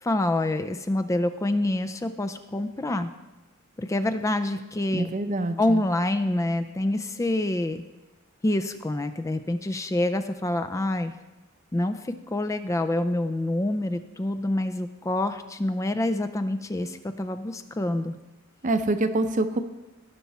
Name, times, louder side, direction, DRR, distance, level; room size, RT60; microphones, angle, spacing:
voice 1, 0.0-3.1 3.8-5.1 5.6-7.8 8.4-11.1 11.7-18.1, left 1 dB, 15° left, 8 dB, 0.4 m, -27 dB
voice 2, 4.9-5.8 18.6-19.6, right 2 dB, 35° right, 9 dB, 0.6 m, -25 dB
17.0 x 5.8 x 4.2 m, 1.1 s
head